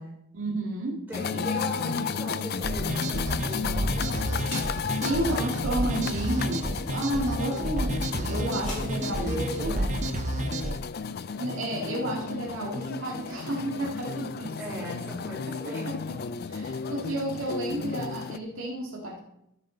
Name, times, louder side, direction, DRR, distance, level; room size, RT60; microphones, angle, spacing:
voice 1, 0.3-1.0 1.3-1.5 5.0-9.7 11.4-14.5 15.5-16.2 16.5-19.2, right 1 dB, 65° right, -2 dB, 2.0 m, -31 dB
sound 1, 1.1-18.4, left 5 dB, 45° left, 0.4 m, -33 dB
voice 2, 1.1-4.5 4.9-5.7 7.2-7.8 8.5-10.0 14.6-15.9, equal, 10° right, -6 dB, 4.7 m, -38 dB
sound 2, 2.6-10.8, right 1 dB, 35° right, 0.7 m, -30 dB
sound 3, 4.2-9.9, left 2 dB, 90° left, 4.6 m, -48 dB
13.0 x 8.1 x 3.8 m, 0.78 s
head